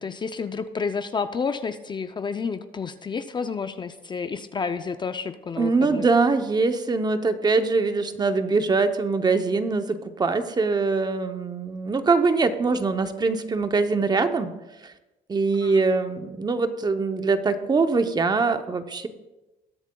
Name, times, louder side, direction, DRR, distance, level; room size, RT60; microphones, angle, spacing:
voice 1, 0.0-6.1 15.6-15.8, left 5 dB, 25° left, 10 dB, 0.5 m, -30 dB
voice 2, 5.6-14.5 14.8-14.9 15.3-19.1, right 4 dB, 25° right, 9 dB, 0.7 m, -23 dB
20.5 x 7.1 x 2.3 m, 1.0 s
cardioid pair, 110°, 17 cm